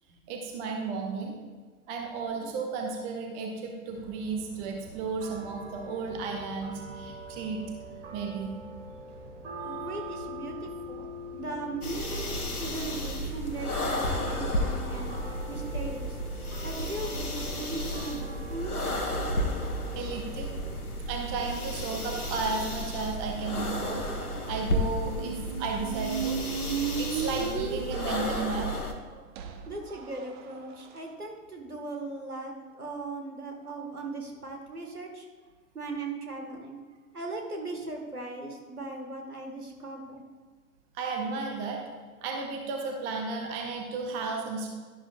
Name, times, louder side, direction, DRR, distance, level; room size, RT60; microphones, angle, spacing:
voice 1, 0.3-1.4 1.9-7.6 8.1-8.5 19.9-20.5 21.1-24.0 24.5-26.4 27.0-28.7 40.9-41.8 42.2-44.7, right 4 dB, 10° right, 2 dB, 0.3 m, -33 dB
sound 1, 3.9-21.1, right 1 dB, 50° right, 1.6 m, -44 dB
voice 2, 9.6-11.1 11.3-15.1 15.5-16.2 16.6-18.8 29.7-35.3 35.7-36.8 37.1-40.2, right 2 dB, 90° right, 2 dB, 1.8 m, -38 dB
sound 2, 11.8-28.9, left 1 dB, 85° left, 1.3 m, -33 dB
sound 3, 25.1-31.0, right 7 dB, 35° right, 0.8 m, -35 dB
11.0 x 11.0 x 2.5 m, 1.5 s
figure-of-eight pair, 105°, 44 cm